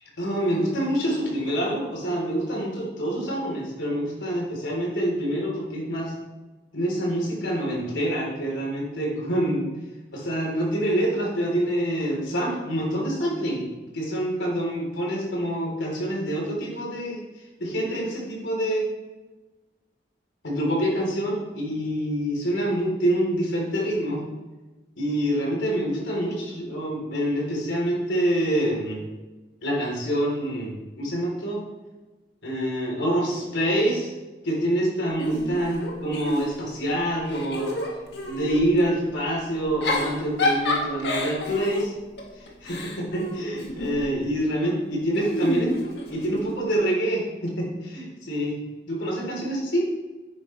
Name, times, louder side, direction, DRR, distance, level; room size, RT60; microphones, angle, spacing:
voice 1, 0.2-6.1 6.7-9.7 10.1-13.7 13.9-18.9 20.4-24.3 25.0-29.0 29.6-31.6 32.4-34.1 34.4-37.8 38.2-41.9 42.4-45.7 46.1-48.6 48.9-49.9, equal, 90° left, -2 dB, 3.6 m, -26 dB
Giggle / Chuckle chortle, 35.2-36.8 37.2-38.6 39.6-44.1 45.2-46.6, left 1 dB, 65° left, 1.9 m, -29 dB
10.5 x 9.4 x 3.3 m, 1.2 s
head